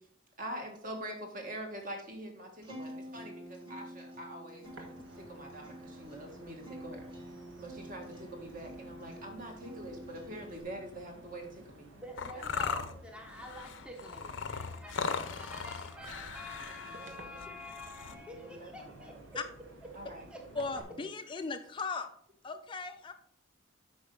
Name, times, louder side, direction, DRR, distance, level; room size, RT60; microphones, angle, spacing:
voice 1, 0.4-7.1 7.6-11.9 12.3-12.5 16.8-17.5 18.1-18.7 19.0-19.1 19.9-20.2 20.5-20.9, right 1 dB, 45° right, 2 dB, 1.8 m, -45 dB
Acoustic guitar, 2.6-10.6, equal, 25° right, 1.8 m, -48 dB
sound 1, 4.6-20.8, right 1 dB, 70° right, 1.4 m, -54 dB
voice 2, 12.0-19.4 19.9-20.5, left 1 dB, 5° right, 2 dB, 0.7 m, -48 dB
sound 2, 12.2-18.1, left 5 dB, 70° left, 0.6 m, -38 dB
voice 3, 20.6-22.1 22.4-23.1, left 4 dB, 25° left, 7 dB, 0.4 m, -37 dB
8.3 x 5.7 x 3.8 m, 0.62 s
head